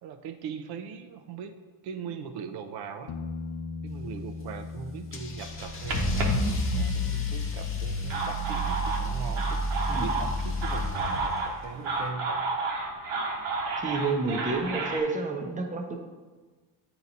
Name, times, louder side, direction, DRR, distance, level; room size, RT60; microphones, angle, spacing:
voice 1, 0.0-1.6 1.8-3.1 3.8-12.4, right 6 dB, 60° right, 8 dB, 0.6 m, -40 dB
sound 1, 3.1-10.7 13.7-13.8, left 4 dB, 70° left, 0.7 m, -42 dB
Car / Engine starting / Accelerating revving vroom, 5.1-11.6, left 1 dB, 30° left, 0.7 m, -30 dB
sound 2, 5.5-7.1 7.8-15.0, right 3 dB, 80° right, 1.2 m, -32 dB
voice 2, 13.8-16.0, right 3 dB, 20° right, 3 dB, 0.5 m, -30 dB
8.4 x 2.9 x 4.0 m, 1.3 s
cardioid pair, 135°, 43 cm